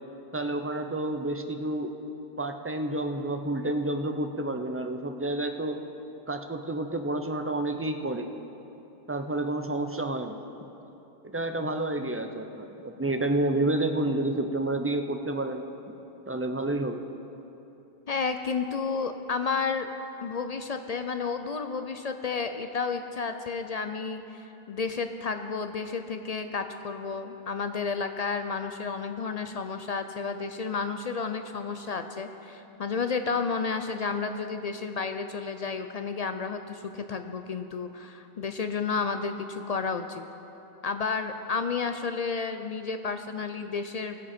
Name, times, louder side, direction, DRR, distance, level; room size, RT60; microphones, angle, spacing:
voice 1, 0.3-1.9 2.4-5.8 6.3-8.3 9.1-10.4 11.2-15.9 16.3-17.0, right 2 dB, 20° right, 6 dB, 0.3 m, -29 dB
voice 2, 18.1-19.9 20.2-40.2 40.8-44.2, left 5 dB, 50° left, 7 dB, 0.5 m, -31 dB
20.0 x 7.5 x 4.3 m, 3.0 s
omnidirectional pair, 1.0 m